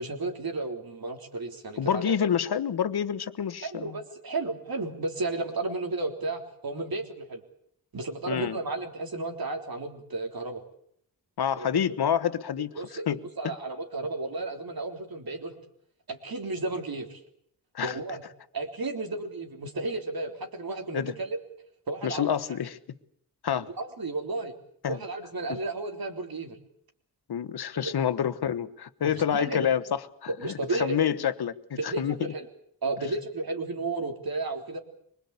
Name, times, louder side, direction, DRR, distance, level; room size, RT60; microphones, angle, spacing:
voice 1, 0.0-2.2 3.6-7.4 7.9-10.6 11.6-11.7 12.8-13.1 13.4-15.6 16.1-17.2 17.8-18.2 18.5-21.4 21.9-22.3 23.8-24.6 24.9-26.6 27.8-28.0 29.0-29.7 30.4-31.0 31.8-32.5 32.8-34.8, right 2 dB, 65° right, 5 dB, 3.7 m, -33 dB
voice 2, 1.8-4.0 8.3-8.6 11.4-12.7 13.1-13.5 17.7-18.0 20.9-21.1 22.0-22.8 23.4-23.7 24.8-25.0 25.5-25.6 27.3-31.5 31.8-32.2, left 8 dB, 80° left, 12 dB, 1.3 m, -28 dB
23.5 x 20.5 x 8.3 m, 0.68 s
cardioid pair, 55°, 38 cm